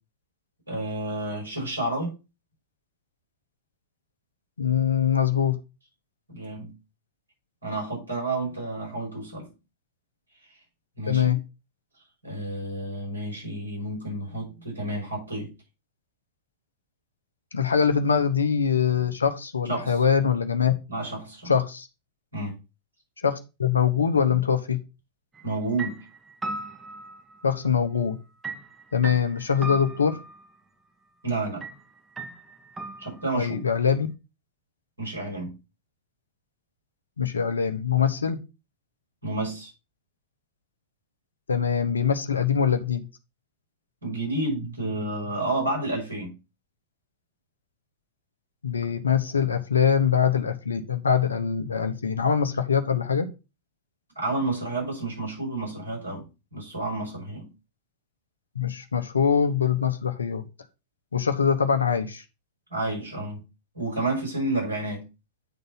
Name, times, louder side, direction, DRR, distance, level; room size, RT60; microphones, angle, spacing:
voice 1, 0.7-2.1 6.3-6.7 7.6-9.5 11.0-11.3 12.2-15.5 19.6-20.0 20.9-21.5 22.3-22.5 25.4-26.0 31.2-31.6 33.0-33.6 35.0-35.5 39.2-39.7 44.0-46.3 54.2-57.4 62.7-63.4 63.7-65.0, right 2 dB, 80° right, 5.9 m, -30 dB
voice 2, 4.6-5.6 11.1-11.4 17.5-20.7 21.5-21.9 23.2-24.8 27.4-28.2 28.9-30.2 33.4-34.1 37.2-38.4 41.5-43.1 48.6-53.3 58.6-60.4 61.1-62.2, left 7 dB, 75° left, 0.9 m, -23 dB
sound 1, 25.3-25.5 25.8-27.7 28.4-30.5 31.6-31.8 32.2-33.5, right 3 dB, 15° right, 1.1 m, -37 dB
9.1 x 4.0 x 5.5 m
figure-of-eight pair, 90°, 0 cm